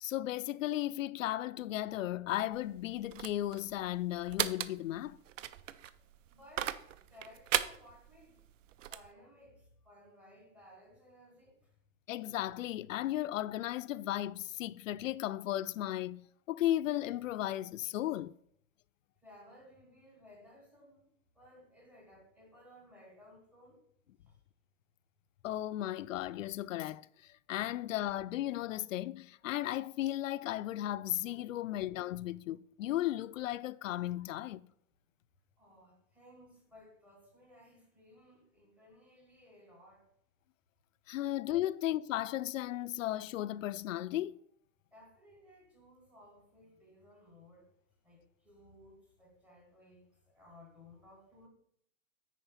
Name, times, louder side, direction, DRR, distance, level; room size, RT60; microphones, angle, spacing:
voice 1, 0.0-5.2 12.1-18.3 25.4-34.7 41.1-44.4, left 14 dB, 65° left, 0.5 m, -35 dB
sound 1, 2.5-9.1, right 11 dB, 65° right, 0.7 m, -38 dB
voice 2, 6.3-8.4 8.9-11.7 19.2-21.1 21.4-23.8 24.3-24.4 35.6-40.1 44.9-47.7 48.0-51.5, left 1 dB, 5° right, 0.7 m, -59 dB
9.0 x 5.1 x 5.7 m
supercardioid pair, 175°, 42 cm